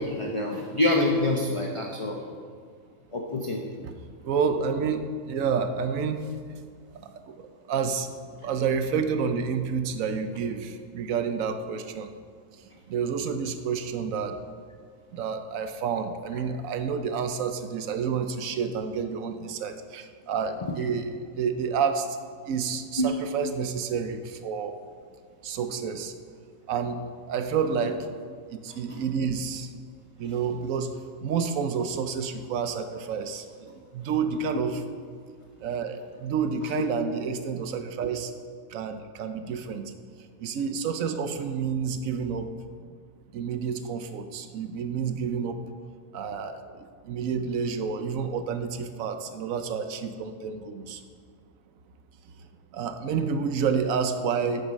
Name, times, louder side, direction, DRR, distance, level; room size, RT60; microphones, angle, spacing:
voice 1, 0.0-2.2 3.1-3.6 23.0-23.1, left 1 dB, 35° left, 0 dB, 0.5 m, -26 dB
voice 2, 4.2-6.6 6.9-12.1 12.9-14.4 15.1-22.2 22.4-24.7 25.4-26.1 26.7-28.1 28.5-29.7 30.2-34.8 35.6-38.3 38.7-39.9 40.4-42.5 43.3-45.6 46.1-51.0 52.4-52.5 52.7-54.7, right 6 dB, 75° right, 8 dB, 1.0 m, -29 dB
8.0 x 6.9 x 5.2 m, 2.1 s
omnidirectional pair, 1.5 m